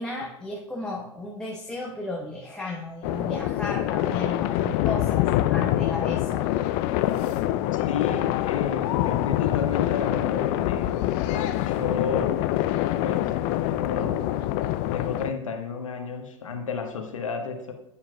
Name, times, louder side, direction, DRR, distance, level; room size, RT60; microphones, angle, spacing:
voice 1, 0.0-6.5, left 2 dB, 5° left, -3 dB, 1.1 m, -34 dB
sound 1, 3.0-15.3, left 14 dB, 45° left, 0.5 m, -25 dB
voice 2, 7.9-12.4 13.0-14.3 14.9-17.7, left 5 dB, 80° left, 5 dB, 1.3 m, -32 dB
10.5 x 8.6 x 2.3 m, 0.87 s
hypercardioid pair, 100°, 17 cm